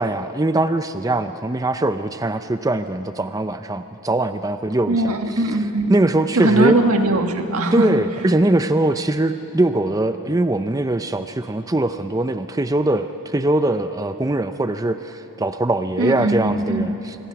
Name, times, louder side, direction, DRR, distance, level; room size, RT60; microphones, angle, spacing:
voice 1, 0.0-5.1 5.4-5.6 5.9-6.8 7.7-17.2, right 2 dB, 15° right, 9 dB, 0.4 m, -21 dB
voice 2, 4.9-5.9 6.3-8.0 16.0-16.9, right 2 dB, 85° right, 5 dB, 1.7 m, -20 dB
25.5 x 21.5 x 5.9 m, 2.9 s
head